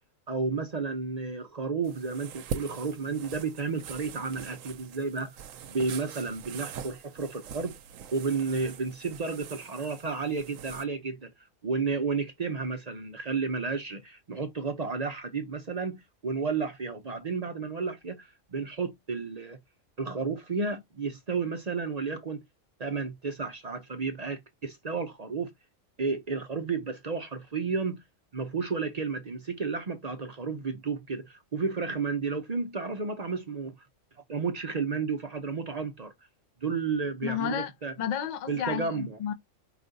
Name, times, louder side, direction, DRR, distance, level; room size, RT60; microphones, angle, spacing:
voice 1, 0.3-5.4 5.7-7.7 8.1-11.3 11.6-19.6 20.0-22.4 22.8-25.5 26.0-28.0 28.3-33.8 34.3-36.1 36.6-37.9 38.5-39.2, right 4 dB, 40° right, 0.6 m, -32 dB
Bed Movement, 1.8-10.8, right 7 dB, 75° right, 1.0 m, -43 dB
voice 2, 37.2-37.7 38.0-39.3, left 9 dB, 45° left, 0.6 m, -31 dB
5.0 x 2.3 x 3.8 m
omnidirectional pair, 1.4 m